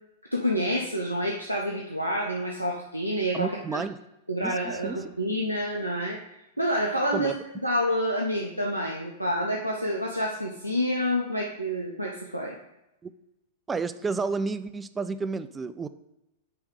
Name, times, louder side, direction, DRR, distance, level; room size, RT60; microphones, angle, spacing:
voice 1, 0.3-3.8 4.3-6.2 6.6-12.5, equal, 90° right, -1 dB, 0.7 m, -28 dB
voice 2, 3.3-4.0 4.4-5.0 7.1-7.3 13.0-13.1 13.7-15.9, right 4 dB, 15° right, 13 dB, 0.4 m, -31 dB
8.6 x 3.2 x 4.9 m, 0.92 s
figure-of-eight pair, 95°, 0 cm